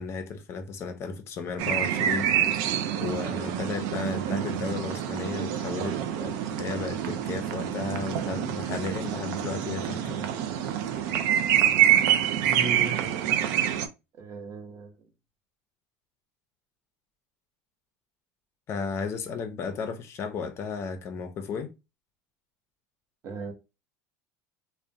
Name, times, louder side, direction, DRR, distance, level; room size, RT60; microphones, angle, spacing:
voice 1, 0.0-2.7 3.0-10.3 18.7-21.7, left 5 dB, 40° left, 0.5 m, -34 dB
sound 1, 1.6-13.9, right 10 dB, 65° right, 0.3 m, -26 dB
voice 2, 12.4-13.3 14.2-15.0 23.2-23.5, right 4 dB, 45° right, 0.7 m, -37 dB
2.5 x 2.1 x 2.5 m
supercardioid pair, 110°, 7 cm